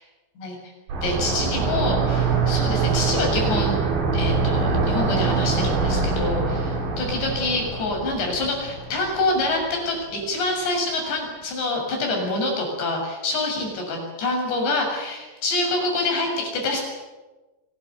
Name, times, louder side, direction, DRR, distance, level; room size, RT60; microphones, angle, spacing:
sound 1, 0.9-9.6 9.9-10.0, right 4 dB, 85° right, 6.9 m, -24 dB
voice 1, 1.0-3.8 4.1-16.8, left 2 dB, 75° left, 1 dB, 9.2 m, -26 dB
25.5 x 20.0 x 9.5 m, 1.2 s
omnidirectional pair, 5.0 m